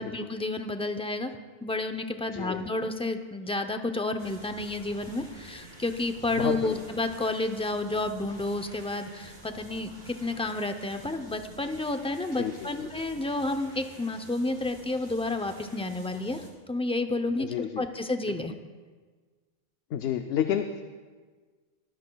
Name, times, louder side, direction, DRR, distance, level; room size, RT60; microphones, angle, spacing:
voice 1, 0.0-1.3 1.6-16.4 16.7-18.5, left 2 dB, 10° left, 7 dB, 0.4 m, -30 dB
voice 2, 2.3-2.7 6.3-6.8 12.4-12.7 17.4-17.9 19.9-20.8, left 9 dB, 85° left, 7 dB, 0.8 m, -30 dB
sound 1, 4.2-16.5, right 2 dB, 45° right, 2.5 m, -49 dB
22.0 x 14.0 x 2.3 m, 1.4 s
omnidirectional pair, 1.0 m